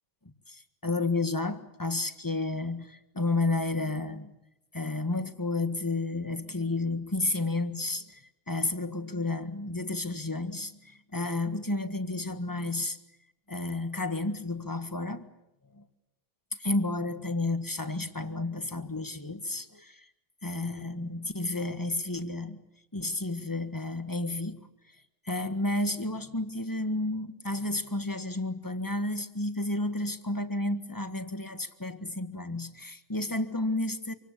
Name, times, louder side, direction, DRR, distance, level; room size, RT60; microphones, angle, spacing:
voice 1, 0.2-4.3 4.7-13.0 13.5-15.3 15.7-15.8 16.6-20.1 20.4-22.6 22.9-24.7 25.2-34.1, left 2 dB, 15° left, 10 dB, 1.7 m, -31 dB
27.5 x 25.0 x 8.4 m, 0.88 s
omnidirectional pair, 1.3 m